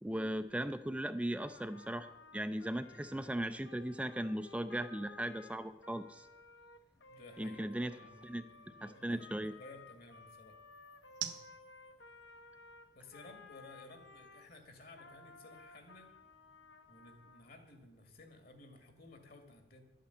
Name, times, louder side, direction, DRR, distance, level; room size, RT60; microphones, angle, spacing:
voice 1, 0.0-2.1 2.3-6.3 7.4-7.9 8.2-8.4 8.8-9.5, right 1 dB, 5° right, 9 dB, 0.4 m, -37 dB
Trumpet, 1.4-14.5 14.9-17.5, left 4 dB, 80° left, 1.2 m, -57 dB
sound 1, 1.4-15.6, right 10 dB, 70° right, 1.3 m, -55 dB
voice 2, 7.1-10.6 12.9-16.1 16.9-19.8, left 2 dB, 60° left, 6 dB, 2.2 m, -56 dB
11.5 x 8.8 x 8.2 m, 0.94 s
head